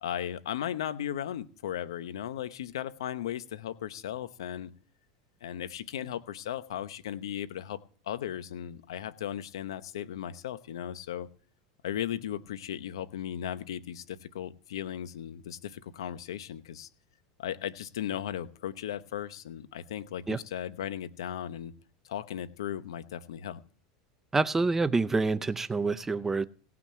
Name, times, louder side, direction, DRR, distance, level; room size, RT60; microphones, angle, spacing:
voice 1, 0.0-4.7 5.4-11.3 11.8-16.9 17.4-21.7 22.1-23.6, left 10 dB, 90° left, 0.9 m, -36 dB
voice 2, 24.3-26.5, right 3 dB, 15° right, 0.5 m, -27 dB
17.5 x 6.0 x 7.6 m
supercardioid pair, 115°, 3 cm